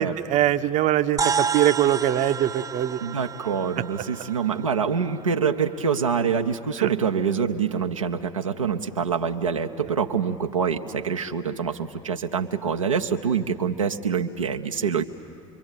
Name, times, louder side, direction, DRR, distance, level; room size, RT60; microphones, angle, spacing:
voice 1, 0.0-3.0 6.8-6.9, right 12 dB, 50° right, 10 dB, 0.8 m, -22 dB
sound 1, 1.2-5.8, right 6 dB, 20° right, 0.6 m, -30 dB
voice 2, 3.0-15.0, right 6 dB, 85° right, 3 dB, 0.7 m, -25 dB
26.0 x 23.0 x 9.0 m, 2.5 s
figure-of-eight pair, 65°, 17 cm